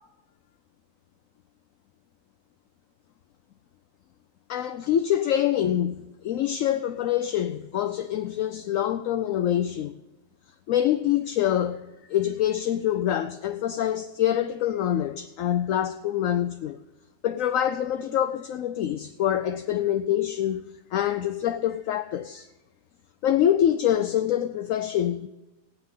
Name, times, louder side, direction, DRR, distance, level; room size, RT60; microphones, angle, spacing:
voice 1, 4.5-9.9 10.7-16.8 17.2-22.5 23.2-25.3, left 11 dB, 70° left, 0.9 m, -25 dB
16.0 x 9.4 x 5.6 m
omnidirectional pair, 1.7 m